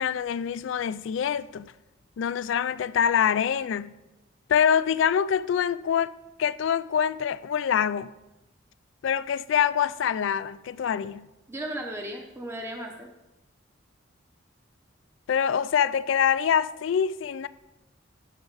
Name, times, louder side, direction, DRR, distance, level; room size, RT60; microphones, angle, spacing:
voice 1, 0.0-1.7 2.2-3.9 4.5-6.1 6.4-8.1 9.0-11.3 15.3-17.5, left 8 dB, 65° left, 0.3 m, -25 dB
voice 2, 11.5-13.1, right 1 dB, 15° right, 0.7 m, -35 dB
13.0 x 6.0 x 4.0 m
head